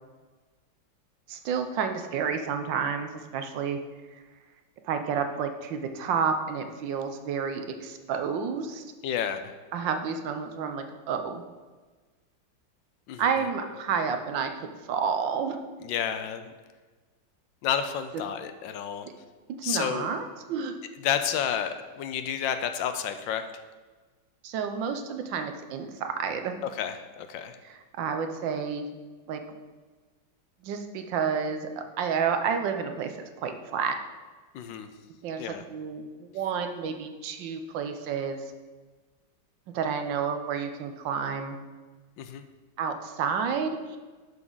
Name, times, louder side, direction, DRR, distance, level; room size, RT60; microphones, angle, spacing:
voice 1, 1.3-3.8 4.8-8.9 9.7-11.4 13.2-15.6 19.5-20.8 24.4-26.6 27.6-28.9 29.3-29.4 30.6-34.0 35.2-38.4 39.7-41.6 42.8-44.0, right 6 dB, 75° right, 7 dB, 1.4 m, -30 dB
voice 2, 9.0-9.5 13.1-13.2 15.8-16.5 17.6-19.1 19.6-20.1 21.0-23.4 26.6-27.6 34.5-34.9 35.4-35.6 42.2-42.4, left 8 dB, 80° left, 9 dB, 1.3 m, -30 dB
11.0 x 6.0 x 3.9 m, 1.3 s
omnidirectional pair, 2.1 m